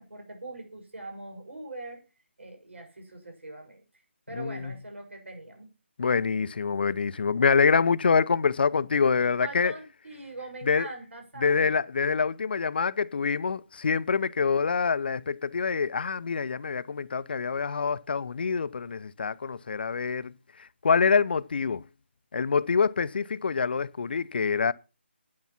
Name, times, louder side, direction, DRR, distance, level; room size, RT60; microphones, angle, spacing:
voice 1, 0.0-2.0 2.4-5.7 9.2-11.7, right 2 dB, 85° right, 6.8 m, -42 dB
voice 2, 4.4-4.7 6.0-9.7 10.7-10.9 11.4-20.3 20.8-21.8 22.3-24.7, left 5 dB, 55° left, 0.6 m, -25 dB
9.6 x 9.5 x 5.8 m
figure-of-eight pair, 160°, 6 cm